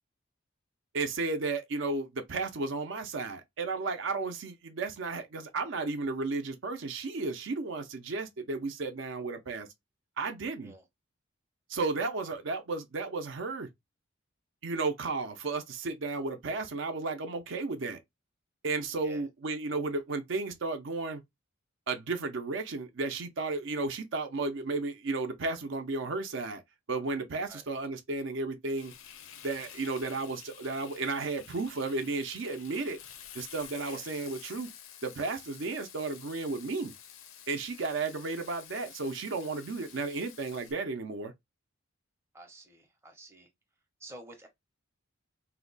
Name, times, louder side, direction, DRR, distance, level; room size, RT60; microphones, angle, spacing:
voice 1, 0.9-9.7 10.2-10.7 11.7-13.7 14.6-18.0 18.6-21.2 21.9-26.6 26.9-28.9 29.4-33.0 33.3-34.7 35.0-36.9 37.5-41.3, right 3 dB, 65° right, 0.5 m, -33 dB
Frying (food), 28.8-40.7, left 9 dB, 75° left, 0.5 m, -50 dB
voice 2, 42.3-43.5 44.0-44.5, right 1 dB, 10° right, 0.6 m, -50 dB
2.7 x 2.1 x 3.8 m
head